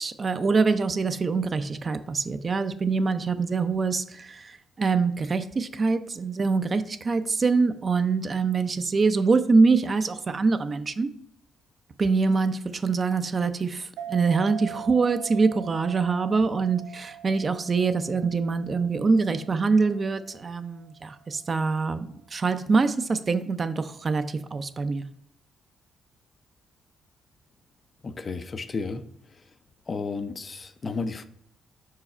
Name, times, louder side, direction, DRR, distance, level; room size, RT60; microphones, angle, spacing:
voice 1, 0.0-11.1 12.0-25.0, right 4 dB, 35° right, 10 dB, 0.5 m, -24 dB
sound 1, 14.0-21.0, right 9 dB, 85° right, 0.5 m, -42 dB
voice 2, 28.0-29.0 29.9-31.2, left 4 dB, 30° left, 10 dB, 0.4 m, -32 dB
5.9 x 4.7 x 4.3 m, 0.68 s
cardioid pair, 125°, 0 cm